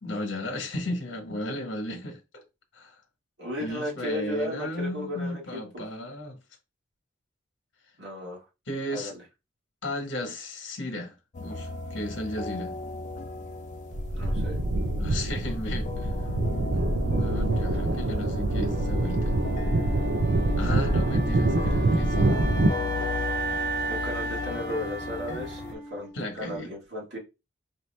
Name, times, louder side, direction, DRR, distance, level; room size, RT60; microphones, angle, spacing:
voice 1, 0.0-2.4 2.7-2.9 3.6-6.4 8.7-9.1 9.8-12.7 15.0-16.1 16.7-16.9 17.2-19.4 20.6-22.3 26.1-26.7, left 1 dB, 65° left, 1.2 m, -35 dB
voice 2, 3.4-5.6 8.0-8.4 8.9-9.1 14.1-14.7 23.9-27.2, left 1 dB, 60° right, 1.9 m, -34 dB
sound 1, 11.3-25.7, left 4 dB, 40° left, 0.5 m, -37 dB
sound 2, 13.9-22.7, right 2 dB, 75° right, 0.7 m, -25 dB
Wind instrument woodwind instrument, 18.4-26.4, right 2 dB, 35° right, 1.8 m, -35 dB
4.6 x 2.8 x 3.2 m
head